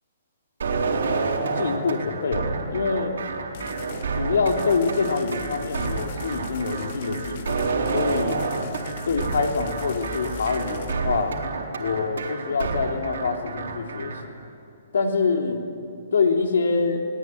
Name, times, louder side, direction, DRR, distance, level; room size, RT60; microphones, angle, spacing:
sound 1, 0.6-14.2, right 4 dB, 75° right, 4.1 m, -29 dB
voice 1, 1.5-3.2 4.2-8.5 9.0-11.4 11.8-14.4 14.9-15.6 16.1-17.0, left 4 dB, 80° left, 3 dB, 3.3 m, -25 dB
sound 2, 3.5-4.1 4.5-10.9, left 3 dB, 40° left, 2.1 m, -39 dB
23.5 x 19.0 x 9.5 m, 2.5 s
hypercardioid pair, 170°, 0 cm